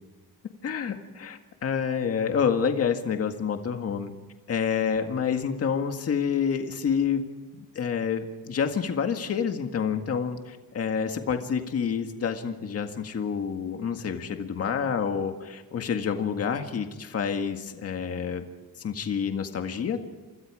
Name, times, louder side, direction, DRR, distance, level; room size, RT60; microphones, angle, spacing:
voice 1, 0.6-4.1 4.5-7.3 7.5-18.5 18.8-20.1, left 7 dB, 40° left, 6 dB, 1.8 m, -28 dB
28.5 x 25.5 x 4.9 m, 1.3 s
cardioid pair, 175°, 36 cm